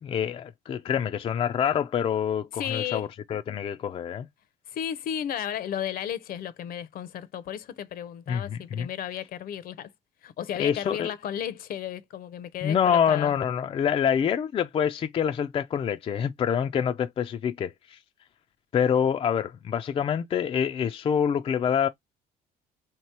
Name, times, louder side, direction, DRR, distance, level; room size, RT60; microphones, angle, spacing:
voice 1, 0.0-4.3 8.3-8.9 10.6-11.1 12.6-18.0 18.7-21.9, left 8 dB, 35° left, 0.3 m, -26 dB
voice 2, 2.5-3.0 4.7-9.9 10.2-13.3, left 10 dB, 60° left, 0.7 m, -34 dB
3.2 x 2.9 x 4.5 m
cardioid pair, 110°, 17 cm